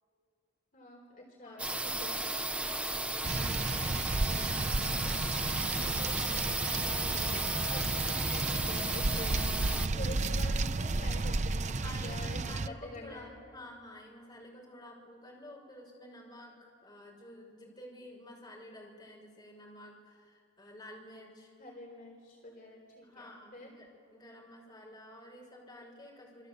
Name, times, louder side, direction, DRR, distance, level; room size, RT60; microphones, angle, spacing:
voice 1, 0.7-2.3 7.7-9.5 9.9-13.3 21.6-23.3 23.5-23.7, left 1 dB, 45° left, -1 dB, 4.4 m, -46 dB
sound 1, 1.6-9.9, right 2 dB, 5° right, 0.8 m, -34 dB
voice 2, 2.4-4.9 5.6-7.6 9.8-10.2 11.7-21.5 23.0-26.5, left 1 dB, 25° left, -2 dB, 6.1 m, -51 dB
sound 2, 3.2-12.7, right 3 dB, 40° right, 0.6 m, -33 dB
27.5 x 26.0 x 8.4 m, 2.4 s
head